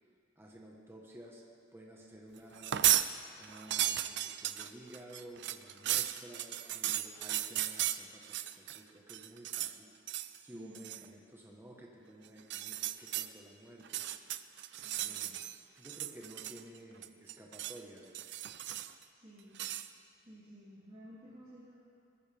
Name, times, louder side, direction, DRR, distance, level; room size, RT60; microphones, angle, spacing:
voice 1, 0.4-1.4 1.7-2.8 3.4-9.9 10.4-14.0 15.0-15.4 15.8-18.4, right 1 dB, 10° right, -2 dB, 1.3 m, -53 dB
sound 1, 2.5-3.1 3.4-8.8 9.1-9.7 10.1-10.4 10.7-11.1 12.4-13.3 13.8-15.6 15.8-16.8 17.0-17.8 18.1-19.0 19.6-19.9, right 13 dB, 60° right, 0.5 m, -35 dB
voice 2, 10.5-10.9 14.8-15.3 19.1-19.6 20.2-21.8, equal, 35° right, -12 dB, 3.5 m, -54 dB
21.0 x 14.5 x 3.6 m, 2.4 s
head